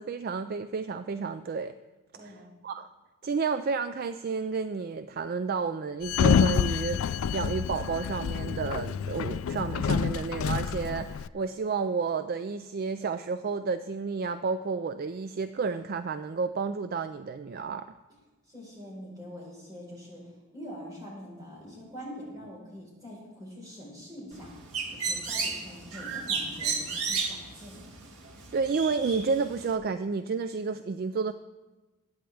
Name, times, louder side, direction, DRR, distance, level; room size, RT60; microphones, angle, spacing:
voice 1, 0.0-1.7 2.2-2.9 3.2-17.9 28.5-31.3, right 5 dB, 45° right, 11 dB, 0.3 m, -31 dB
voice 2, 2.1-2.5 18.5-24.5 24.9-27.8, equal, 15° right, -4 dB, 4.5 m, -44 dB
Sliding door, 6.0-11.3, left 7 dB, 70° left, 0.3 m, -27 dB
Bird, 24.3-29.7, right 4 dB, 90° right, 1.7 m, -34 dB
21.0 x 9.0 x 3.4 m, 1.2 s
head